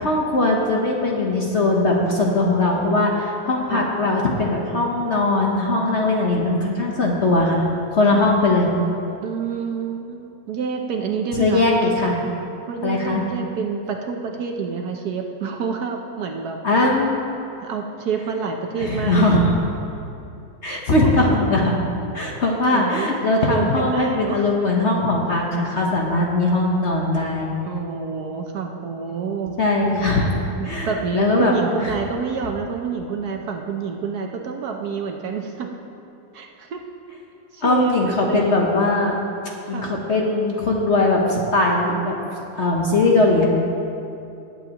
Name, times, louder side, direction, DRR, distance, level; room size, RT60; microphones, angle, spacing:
voice 1, 0.0-7.6 7.9-8.7 11.3-12.2 12.8-13.2 16.6-17.2 18.8-19.4 20.6-21.7 22.1-27.5 29.6-30.3 30.6-31.5 31.8-31.9 37.6-39.2 39.7-42.2 42.5-43.5, left 2 dB, 45° left, -1 dB, 1.1 m, -20 dB
voice 2, 9.2-11.7 12.7-16.6 17.6-19.3 20.6-21.3 22.7-23.1 23.4-24.5 27.7-29.5 29.9-30.3 30.6-35.7 36.3-36.8 37.5-38.7 39.7-39.9, right 6 dB, 65° right, 3 dB, 1.1 m, -28 dB
18.5 x 8.4 x 2.9 m, 2.7 s
omnidirectional pair, 2.0 m